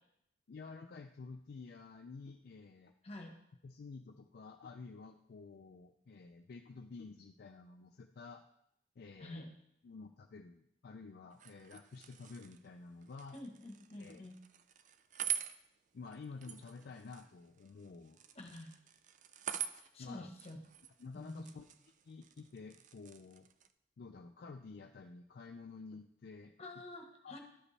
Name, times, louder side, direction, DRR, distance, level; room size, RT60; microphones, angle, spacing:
voice 1, 0.5-2.9 3.6-8.4 9.0-9.4 9.8-13.4 14.0-14.2 15.9-18.2 20.0-20.3 21.0-21.7 22.0-23.5 24.0-26.5 27.2-27.4, left 4 dB, 55° left, 5 dB, 0.4 m, -51 dB
voice 2, 9.2-9.5 13.3-14.4 18.3-18.7 19.8-20.6 21.1-21.6 26.6-27.4, left 1 dB, 35° left, 3 dB, 1.2 m, -48 dB
sound 1, 11.3-23.7, right 10 dB, 40° right, 0.4 m, -46 dB
11.5 x 5.1 x 3.3 m, 0.77 s
head